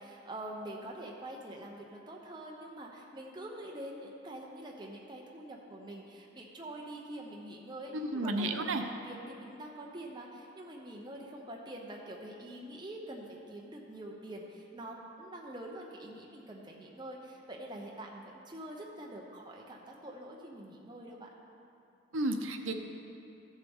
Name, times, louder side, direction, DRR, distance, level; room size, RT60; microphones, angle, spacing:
voice 1, 0.0-21.3, right 1 dB, 20° right, -2 dB, 0.7 m, -45 dB
voice 2, 7.9-8.8 22.1-22.7, right 2 dB, 80° right, 6 dB, 0.7 m, -32 dB
14.0 x 7.3 x 3.6 m, 2.8 s
head